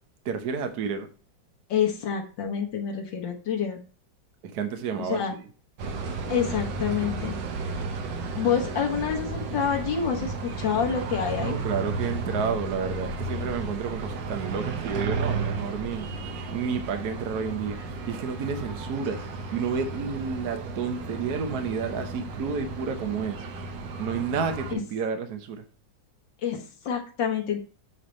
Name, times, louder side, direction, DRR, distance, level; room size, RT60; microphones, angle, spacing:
voice 1, 0.2-1.1 4.4-5.2 11.4-16.1 16.5-19.2 19.5-23.4 24.0-25.6, right 6 dB, 65° right, 1.4 m, -30 dB
voice 2, 1.7-3.8 5.0-5.3 6.3-7.4 8.3-11.6 24.7-24.8 26.4-27.6, left 7 dB, 90° left, 1.9 m, -27 dB
sound 1, 5.8-24.7, right 4 dB, 80° right, 1.6 m, -33 dB
8.6 x 3.3 x 5.1 m
omnidirectional pair, 1.9 m